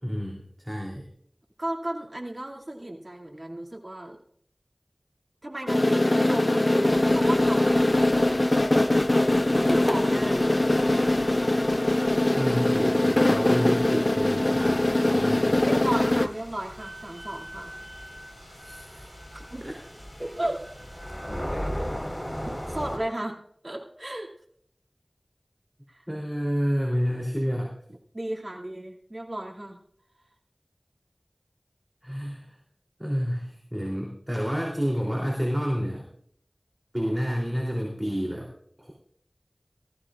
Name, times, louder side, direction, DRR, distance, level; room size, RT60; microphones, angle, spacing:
voice 1, 0.0-1.1 12.3-16.2 18.5-19.0 19.6-19.7 20.2-20.3 21.5-21.9 26.1-27.7 32.0-32.6 33.0-36.1 36.9-38.5 38.8-38.9, equal, 10° right, -2 dB, 3.3 m, -29 dB
voice 2, 1.6-4.2 5.4-8.2 9.5-10.6 15.6-17.7 19.3-19.7 20.2-20.6 22.3-23.4 23.6-24.3 25.9-26.0 28.1-29.8, right 1 dB, 55° right, 0 dB, 2.7 m, -34 dB
sound 1, 5.7-16.3, left 1 dB, 45° left, 0.4 m, -22 dB
sound 2, 6.9-23.0, equal, 20° left, 4.5 m, -40 dB
Wind instrument woodwind instrument, 16.7-21.4, equal, 35° right, 5.0 m, -47 dB
19.0 x 14.5 x 2.5 m, 0.67 s
wide cardioid pair, 40°, 0 cm